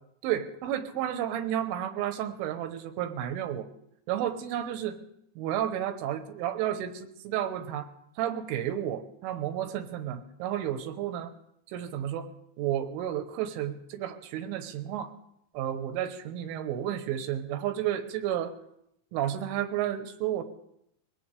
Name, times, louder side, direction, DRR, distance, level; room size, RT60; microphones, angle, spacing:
voice 1, 0.2-3.7 4.1-5.0 5.4-7.9 8.2-11.3 11.7-12.3 12.6-15.1 15.6-18.5 19.1-20.4, right 11 dB, 85° right, 8 dB, 3.5 m, -32 dB
22.5 x 17.0 x 3.4 m, 0.75 s
omnidirectional pair, 5.7 m